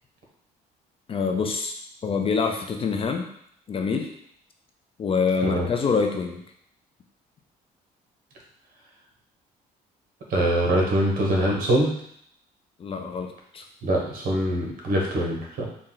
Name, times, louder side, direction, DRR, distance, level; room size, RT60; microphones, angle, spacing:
voice 1, 1.1-1.8 2.0-3.3 3.7-4.1 5.0-6.4 12.8-13.6, left 5 dB, 35° left, 4 dB, 0.5 m, -25 dB
voice 2, 10.3-11.9 13.8-15.7, right 1 dB, 55° right, -1 dB, 1.3 m, -23 dB
4.2 x 2.4 x 3.8 m, 0.67 s
cardioid pair, 110°, 17 cm